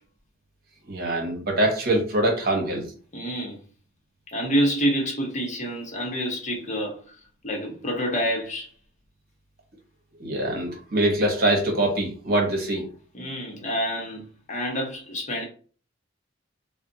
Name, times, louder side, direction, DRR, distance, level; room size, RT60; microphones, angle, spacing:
voice 1, 0.9-2.8 10.2-12.8, right 1 dB, 50° right, 1.0 m, -23 dB
voice 2, 3.1-3.6 4.3-7.2 7.4-8.7 13.1-14.2 14.5-15.4, equal, 40° left, 0.9 m, -27 dB
2.4 x 2.1 x 3.9 m
head